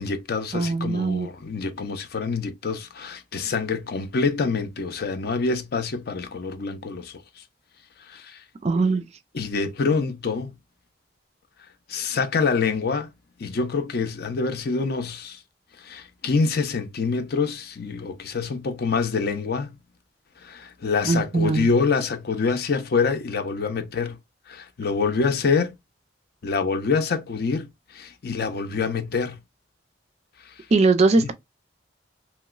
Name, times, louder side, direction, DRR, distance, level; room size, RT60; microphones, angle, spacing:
voice 1, 0.0-7.4 8.0-8.4 9.3-10.5 11.9-13.1 13.4-15.4 15.8-19.7 20.4-24.2 24.5-25.7 26.4-29.4 30.4-30.7 31.2-31.3, left 4 dB, 50° left, 0.5 m, -26 dB
voice 2, 0.5-1.3 8.6-9.0 21.0-21.7 30.7-31.3, right 3 dB, 35° right, 0.3 m, -20 dB
2.9 x 2.9 x 2.3 m
head